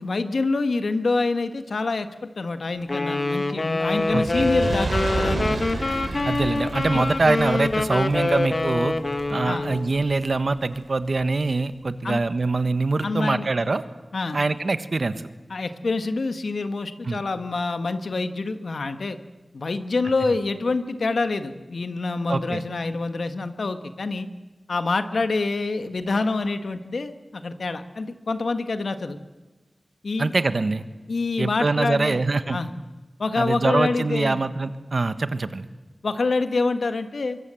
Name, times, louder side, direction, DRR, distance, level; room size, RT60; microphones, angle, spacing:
voice 1, 0.0-5.5 6.9-7.0 9.4-9.7 12.0-12.2 13.0-13.5 14.1-14.4 15.5-19.2 19.5-24.3 24.7-29.2 30.0-30.3 31.1-32.2 32.5-32.7 33.2-34.4 36.0-37.4, left 3 dB, 80° left, 9 dB, 1.5 m, -26 dB
Wind instrument woodwind instrument, 2.9-9.9, left 2 dB, 55° left, 1.6 m, -25 dB
voice 2, 4.1-4.5 6.2-8.9 9.3-13.8 14.3-15.3 17.0-17.2 22.3-22.6 30.2-30.8 31.4-32.6 33.4-35.7, right 3 dB, 65° right, 11 dB, 1.4 m, -24 dB
Fire, 4.1-10.5 11.2-11.3, right 3 dB, 80° right, 3.8 m, -31 dB
24.0 x 23.5 x 7.8 m, 1.2 s
wide cardioid pair, 50°, 0 cm